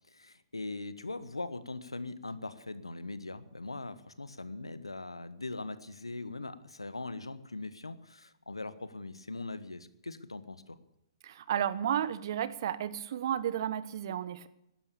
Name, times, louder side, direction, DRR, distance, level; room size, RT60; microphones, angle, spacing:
voice 1, 0.1-10.8, left 3 dB, 85° left, 14 dB, 1.3 m, -41 dB
voice 2, 11.2-14.5, right 10 dB, 50° right, 15 dB, 1.2 m, -32 dB
17.0 x 12.0 x 6.9 m, 0.82 s
figure-of-eight pair, 125°, 3 cm